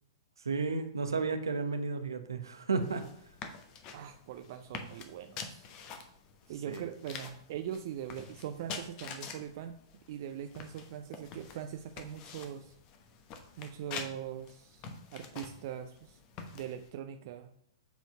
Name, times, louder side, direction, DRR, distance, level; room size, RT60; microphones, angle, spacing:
voice 1, 0.4-3.0 6.7-6.9, right 4 dB, 70° right, 7 dB, 1.0 m, -32 dB
sound 1, 2.8-16.9, left 5 dB, 35° left, 1.0 m, -47 dB
voice 2, 3.9-5.7 6.5-9.7 10.1-12.7 13.6-16.2 16.5-17.5, right 9 dB, 45° right, 7 dB, 0.5 m, -41 dB
8.1 x 4.4 x 5.6 m, 0.69 s
figure-of-eight pair, 105°, 2 cm